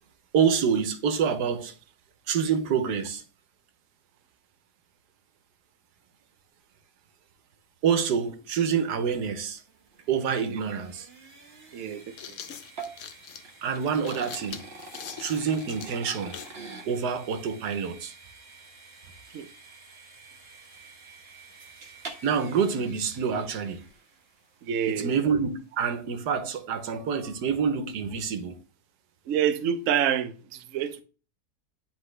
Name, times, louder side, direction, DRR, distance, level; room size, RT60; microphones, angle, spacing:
voice 1, 0.3-1.7 2.3-3.2 7.8-9.6 10.1-11.1 13.6-14.6 15.2-16.4 16.9-18.1 22.2-23.8 24.9-28.6, right 6 dB, 85° right, 1.4 m, -27 dB
sound 1, 9.3-24.5, right 3 dB, 40° right, 1.2 m, -47 dB
sound 2, 10.8-10.9 11.9-16.6, left 8 dB, 65° left, 0.8 m, -43 dB
voice 2, 11.7-12.4 19.3-19.5 24.6-25.1 29.3-31.0, right 9 dB, 60° right, 0.9 m, -28 dB
9.6 x 3.9 x 3.2 m
omnidirectional pair, 1.7 m